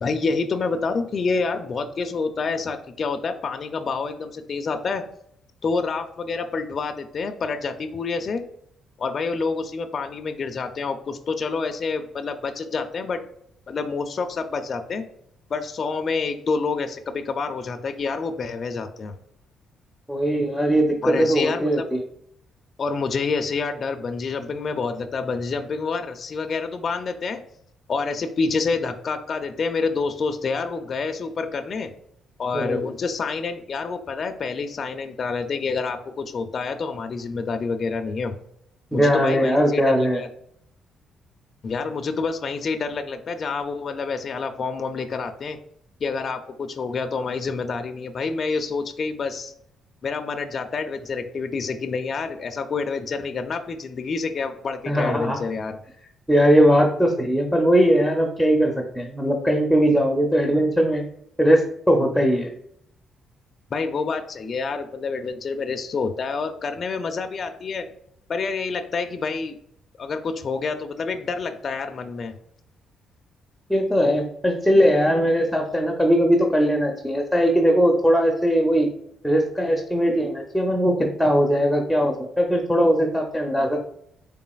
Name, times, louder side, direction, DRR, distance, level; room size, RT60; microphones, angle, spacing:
voice 1, 0.0-5.0 5.6-8.4 9.0-13.2 13.7-15.0 15.5-19.1 21.0-21.9 22.8-27.4 27.9-31.9 32.4-38.3 38.9-40.3 41.6-45.6 46.0-49.5 50.0-55.8 63.7-67.9 68.3-69.6 70.0-72.3, left 4 dB, 45° left, 5 dB, 0.4 m, -28 dB
voice 2, 20.1-22.0 32.5-32.8 38.9-40.2 54.9-55.4 56.3-61.0 61.4-61.6 61.9-62.5 73.7-78.9 79.2-83.8, equal, ahead, 2 dB, 0.5 m, -20 dB
3.9 x 3.6 x 2.3 m, 0.70 s
cardioid pair, 90°, 0 cm